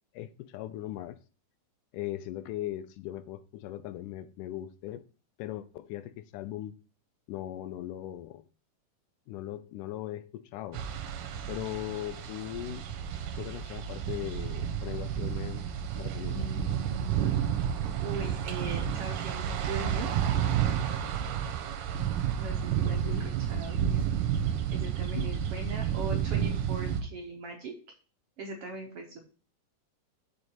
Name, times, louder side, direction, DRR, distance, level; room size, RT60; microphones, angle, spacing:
voice 1, 0.1-1.2 1.9-5.1 5.4-6.7 7.3-8.4 9.3-10.8 11.5-12.9 13.4-15.7 16.0-16.4 22.9-23.3 25.2-25.3, left 13 dB, 80° left, 2.0 m, -39 dB
sound 1, 10.7-27.0, right 9 dB, 80° right, 2.4 m, -31 dB
voice 2, 16.3-17.4 18.0-20.1 22.4-23.1 23.5-23.8 24.7-27.7 28.4-29.2, right 2 dB, 60° right, 1.6 m, -40 dB
6.8 x 5.0 x 4.4 m
omnidirectional pair, 3.8 m